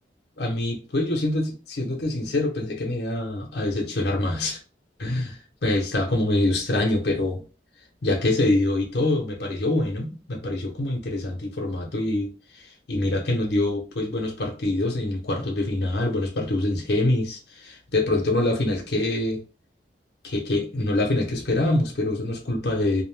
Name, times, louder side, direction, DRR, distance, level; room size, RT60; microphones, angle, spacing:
voice 1, 0.4-4.6 5.0-7.4 8.0-19.4 20.2-23.0, left 2 dB, 70° left, 0.7 m, -25 dB
2.4 x 2.1 x 3.2 m
head